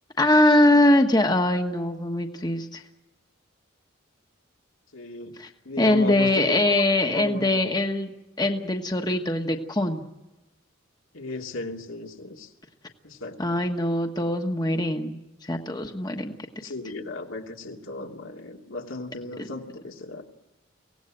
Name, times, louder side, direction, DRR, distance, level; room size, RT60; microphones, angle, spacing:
voice 1, 0.2-2.8 5.4-5.5 5.8-8.1 8.4-10.0 13.4-16.5 19.4-19.5, left 1 dB, 20° left, 5 dB, 1.2 m, -22 dB
voice 2, 4.9-5.3 5.6-6.7 7.1-7.6 11.1-12.5 13.0-13.4 16.6-20.2, left 2 dB, 85° left, 1 dB, 2.8 m, -35 dB
24.0 x 17.5 x 9.0 m, 1.0 s
head